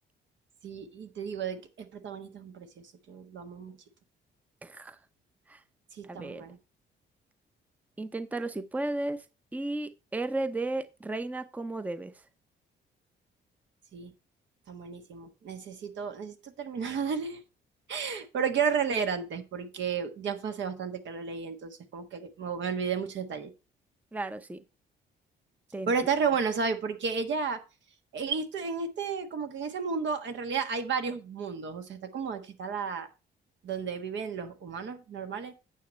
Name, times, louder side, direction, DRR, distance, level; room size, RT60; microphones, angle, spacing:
voice 1, 0.6-2.7 3.1-3.7 6.0-6.6 13.9-14.1 14.7-17.4 17.9-23.5 25.9-27.6 28.1-33.1 33.6-35.5, right 6 dB, 70° right, 1.4 m, -32 dB
voice 2, 4.6-5.0 5.5-5.6 6.0-6.4 8.0-9.2 9.5-12.1 24.1-24.6 25.7-25.9, right 2 dB, 10° right, 0.6 m, -34 dB
9.1 x 6.6 x 4.3 m
cardioid pair, 90°, 20 cm